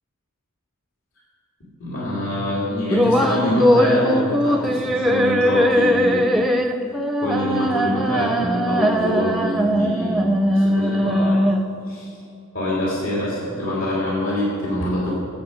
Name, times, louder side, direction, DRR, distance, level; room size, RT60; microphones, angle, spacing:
voice 1, 1.6-6.3 7.2-11.4 11.9-12.1 12.5-15.2, left 1 dB, 65° left, -6 dB, 3.0 m, -25 dB
sound 1, 2.9-11.9, equal, ahead, 0.6 m, -20 dB
19.0 x 8.4 x 5.2 m, 2.4 s
head